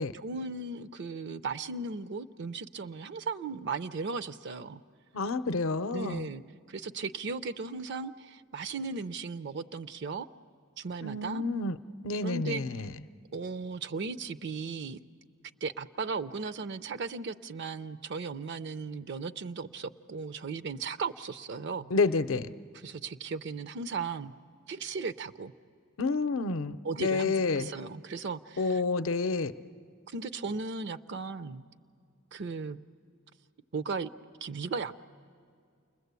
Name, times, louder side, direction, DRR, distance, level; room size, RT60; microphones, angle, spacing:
voice 1, 0.1-4.8 5.9-6.4 6.7-10.3 10.8-11.4 12.2-12.9 13.3-15.0 15.6-21.9 22.7-24.3 24.7-25.5 26.8-28.8 30.1-31.6 32.3-32.8 33.7-34.1 34.4-35.0, right 4 dB, 60° right, 12 dB, 0.5 m, -36 dB
voice 2, 5.1-6.3 11.0-11.8 12.0-13.0 21.9-22.5 26.0-27.7 28.6-29.5, left 3 dB, 75° left, 12 dB, 0.6 m, -29 dB
29.0 x 21.0 x 8.2 m, 2.3 s
head